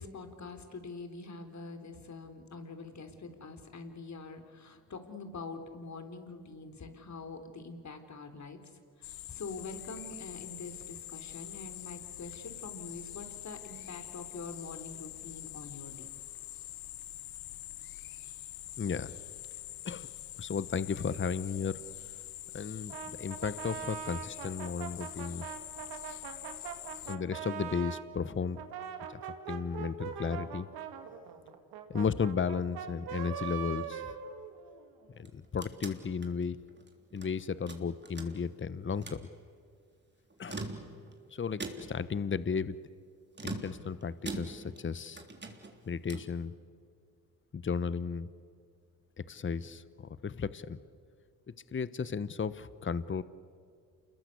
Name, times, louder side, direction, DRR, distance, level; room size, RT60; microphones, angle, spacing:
voice 1, 0.0-8.6 9.0-16.1, left 3 dB, 50° left, 7 dB, 3.8 m, -45 dB
sound 1, 9.0-27.2, left 15 dB, 75° left, 1.0 m, -45 dB
voice 2, 18.8-19.1 19.8-20.1 20.4-21.8 22.5-25.5 27.1-28.6 29.1-29.2 29.5-30.7 31.9-34.1 35.2-36.6 37.1-39.3 40.4-40.6 41.3-42.8 43.4-45.2 45.9-46.5 47.5-48.3 49.3-50.8 51.7-53.2, left 6 dB, 30° left, 16 dB, 1.1 m, -34 dB
Brass instrument, 22.9-28.1 28.5-34.9, right 8 dB, 80° right, 2.2 m, -42 dB
sound 2, 35.1-37.3 37.7-38.6 38.9-39.3 40.3-41.2 41.6-42.1 43.3-44.9 45.2-46.4, right 2 dB, 30° right, 3.5 m, -43 dB
28.5 x 21.5 x 8.3 m, 2.2 s
supercardioid pair, 55°, 37 cm